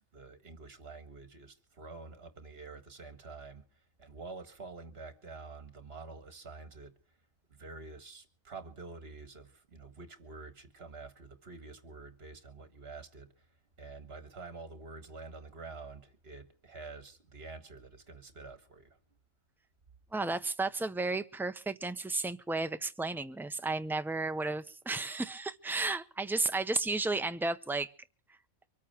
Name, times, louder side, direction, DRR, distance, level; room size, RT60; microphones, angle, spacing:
voice 1, 0.0-7.2 7.5-19.0, right 3 dB, 50° right, 1.9 m, -48 dB
voice 2, 20.1-27.9, right 3 dB, 5° right, 0.4 m, -33 dB
24.5 x 8.6 x 5.9 m
omnidirectional pair, 1.3 m